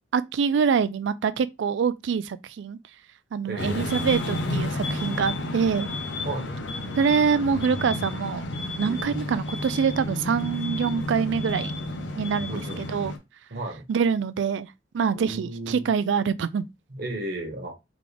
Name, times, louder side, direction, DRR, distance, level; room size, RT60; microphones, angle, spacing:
voice 1, 0.1-2.8 3.3-5.9 7.0-8.5 8.8-11.7 12.2-13.1 13.9-16.6, right 6 dB, 70° right, 0.3 m, -25 dB
voice 2, 3.4-3.9 6.2-6.5 8.8-9.2 12.5-12.9 13.5-13.8 15.1-15.9 16.9-17.7, right 1 dB, 55° right, 1.4 m, -34 dB
sound 1, 3.6-13.2, left 1 dB, 70° left, 0.8 m, -31 dB
3.8 x 3.3 x 3.3 m
head